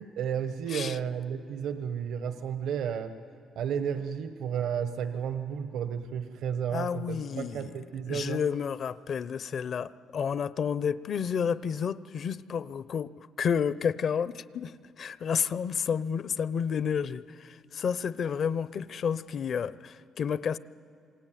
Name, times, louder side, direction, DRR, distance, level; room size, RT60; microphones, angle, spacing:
voice 1, 0.0-3.1 3.5-8.4, right 8 dB, 80° right, 9 dB, 1.2 m, -32 dB
voice 2, 6.7-7.7 8.1-20.6, left 7 dB, 60° left, 16 dB, 0.7 m, -31 dB
27.0 x 21.5 x 9.3 m, 2.8 s
cardioid pair, 85°, 0 cm